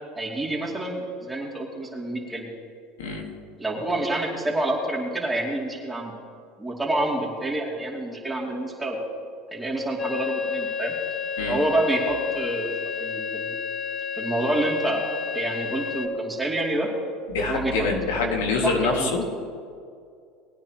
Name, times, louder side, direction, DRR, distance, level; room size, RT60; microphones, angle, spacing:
voice 1, 0.2-2.5 3.6-6.1 6.6-9.0 9.5-10.9 11.5-12.7 13.0-13.6 14.1-15.0 15.3-16.9 17.5-19.1, right 1 dB, 10° right, -3 dB, 2.6 m, -28 dB
sound 1, 10.0-16.1, left 6 dB, 30° left, 0.9 m, -30 dB
voice 2, 17.3-19.4, left 3 dB, 85° left, 1 dB, 1.9 m, -25 dB
20.5 x 9.4 x 3.0 m, 2.3 s
hypercardioid pair, 90°, 0 cm